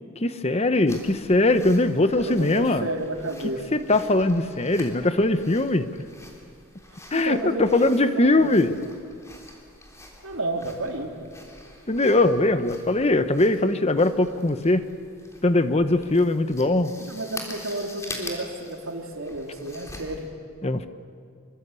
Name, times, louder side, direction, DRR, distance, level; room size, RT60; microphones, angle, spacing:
voice 1, 0.2-2.8 3.7-5.9 7.1-8.7 11.9-14.8 15.4-16.9 20.6-20.9, left 2 dB, 30° left, 10 dB, 1.0 m, -21 dB
sound 1, 0.9-20.3, left 1 dB, 15° left, 3.6 m, -45 dB
voice 2, 2.2-3.6 7.1-7.9 8.2-8.5 10.2-11.3 12.0-12.3 17.0-20.3, right 1 dB, 85° right, 1 dB, 3.7 m, -31 dB
26.5 x 24.0 x 8.4 m, 2.3 s
head